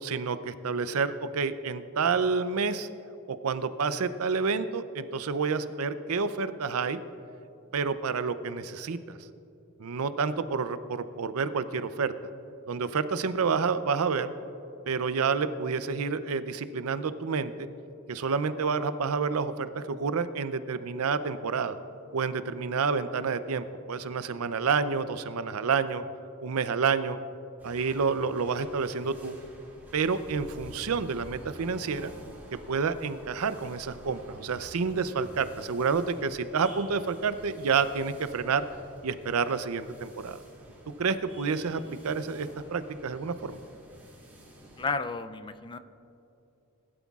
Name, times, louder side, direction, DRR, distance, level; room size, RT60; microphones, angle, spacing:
voice 1, 0.0-2.9 3.3-7.0 7.7-9.2 9.8-12.1 12.7-14.3 14.9-17.7 18.1-21.8 22.1-26.0 26.4-27.2 27.6-29.4 29.9-32.1 32.7-38.6 39.0-40.4 41.0-43.6, right 5 dB, 80° right, 12 dB, 0.5 m, -29 dB
sound 1, 27.6-44.9, right 1 dB, 10° right, 2.5 m, -50 dB
voice 2, 44.8-45.8, left 4 dB, 20° left, 11 dB, 0.4 m, -32 dB
19.5 x 12.0 x 2.4 m, 2.8 s
head